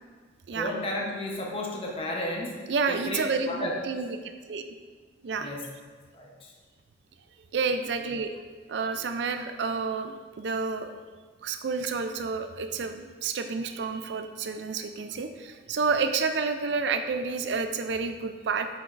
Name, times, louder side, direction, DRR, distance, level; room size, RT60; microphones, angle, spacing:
voice 1, 0.5-2.6 2.9-3.7 5.4-5.6 6.1-6.5, left 1 dB, 30° left, -1 dB, 0.9 m, -33 dB
voice 2, 2.7-4.1 4.5-4.6 5.2-5.5 7.5-8.3 8.7-10.9 11.4-18.7, right 4 dB, 70° right, 7 dB, 0.4 m, -29 dB
7.8 x 5.9 x 2.5 m, 1.5 s
head